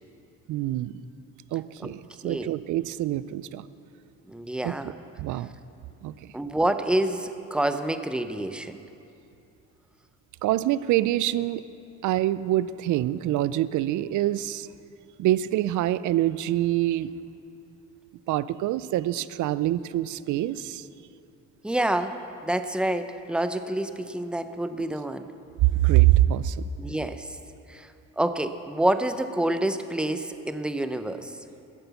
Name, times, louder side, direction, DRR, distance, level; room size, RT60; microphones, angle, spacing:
voice 1, 0.5-0.9 1.5-3.6 4.6-4.7 5.2-5.5 6.0-6.1 10.4-11.6 12.0-14.7 15.2-17.1 18.3-20.8 25.8-26.6, right 14 dB, 75° right, 16 dB, 0.5 m, -25 dB
voice 2, 4.3-4.9 6.3-8.8 21.6-22.2 22.4-25.3 26.8-27.3 27.7-27.9 28.2-31.4, right 1 dB, 5° right, 9 dB, 0.6 m, -27 dB
12.5 x 7.9 x 7.0 m, 2.7 s
cardioid pair, 90°, 30 cm